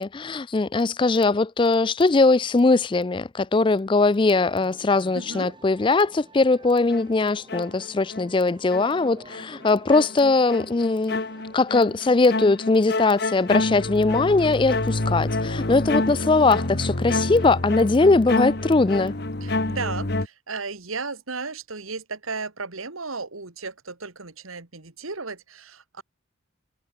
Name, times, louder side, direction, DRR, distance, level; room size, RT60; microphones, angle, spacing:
voice 1, 0.0-11.2 11.5-19.1, left 3 dB, 25° left, 0.4 m, -20 dB
sound 1, 4.2-19.3, right 1 dB, 20° right, 4.4 m, -51 dB
voice 2, 5.1-5.5 19.4-26.0, right 4 dB, 85° right, 2.5 m, -34 dB
sound 2, 6.9-8.3 8.7-20.3, left 2 dB, 50° left, 1.5 m, -28 dB
head